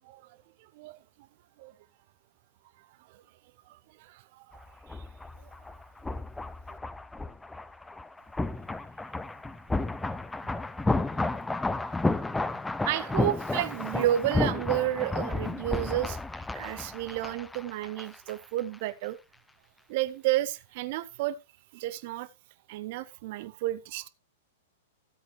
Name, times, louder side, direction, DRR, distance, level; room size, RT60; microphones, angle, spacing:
voice 1, 0.0-1.0 1.6-1.7 3.1-3.2 3.7-4.6 4.9-5.1 12.8-19.2 19.9-21.4 21.7-22.3 22.7-24.1, right 14 dB, 50° right, 0.6 m, -32 dB
sound 1, 4.5-18.3 18.6-18.7, left 2 dB, 5° left, 0.5 m, -32 dB
13.5 x 8.0 x 3.2 m
figure-of-eight pair, 105°, 0 cm